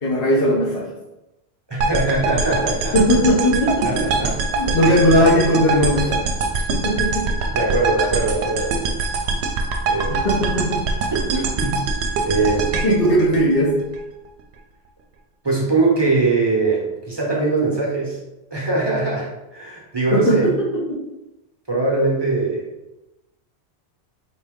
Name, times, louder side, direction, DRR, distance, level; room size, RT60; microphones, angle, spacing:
voice 1, 0.0-0.9 2.9-3.9 4.5-6.2 6.7-7.3 10.1-10.8 12.8-13.7 20.1-20.4, equal, 60° left, -7 dB, 1.1 m, -18 dB
voice 2, 1.7-3.0 3.8-4.3 4.8-5.3 7.4-8.8 9.8-10.3 11.3-12.7 15.4-18.2 18.5-20.5 21.7-22.7, right 3 dB, 25° right, -3 dB, 0.8 m, -22 dB
sound 1, 1.8-14.0, right 3 dB, 75° right, 0.8 m, -23 dB
4.4 x 2.7 x 3.6 m, 0.96 s
omnidirectional pair, 1.1 m